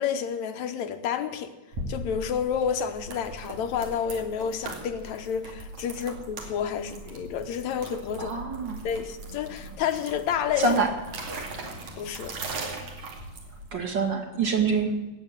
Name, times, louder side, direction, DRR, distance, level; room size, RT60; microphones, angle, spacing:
voice 1, 0.0-1.5 1.9-8.3 8.8-10.8 12.0-12.4, left 8 dB, 70° left, 8 dB, 2.1 m, -30 dB
sound 1, 1.7-13.8, right 2 dB, 65° right, 3.8 m, -39 dB
voice 2, 8.2-8.8 10.6-10.9 13.7-14.9, right 4 dB, 40° right, 3 dB, 2.6 m, -25 dB
19.0 x 8.1 x 8.8 m, 1.1 s
omnidirectional pair, 3.6 m